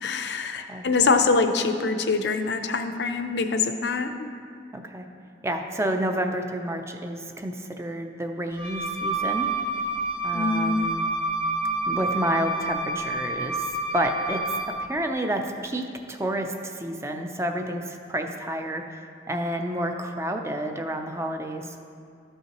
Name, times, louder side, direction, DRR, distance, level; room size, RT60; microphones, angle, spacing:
voice 1, 0.0-4.3 10.3-10.9, left 4 dB, 65° left, 7 dB, 0.5 m, -24 dB
voice 2, 4.7-5.1 5.4-9.5 10.2-11.1 11.9-13.7 13.9-18.8 19.3-21.7, right 1 dB, 15° right, 5 dB, 0.5 m, -30 dB
Wind instrument woodwind instrument, 8.5-14.8, right 2 dB, 30° right, 1.1 m, -28 dB
13.0 x 5.5 x 3.0 m, 2.3 s
head